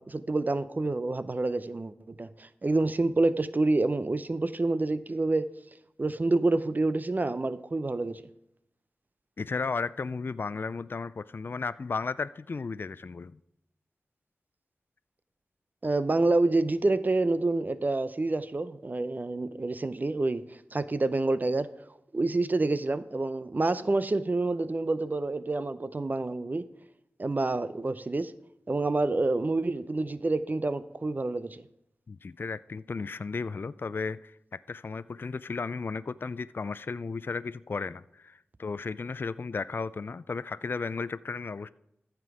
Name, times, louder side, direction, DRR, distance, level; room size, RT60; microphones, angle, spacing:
voice 1, 0.0-5.5 6.0-8.2 15.8-21.7 22.1-26.7 27.2-28.3 28.7-31.6, right 2 dB, 40° right, 14 dB, 0.5 m, -28 dB
voice 2, 9.4-13.4 32.1-41.7, left 4 dB, 50° left, 15 dB, 0.3 m, -34 dB
14.5 x 5.9 x 4.8 m, 0.81 s
wide cardioid pair, 60°, 5 cm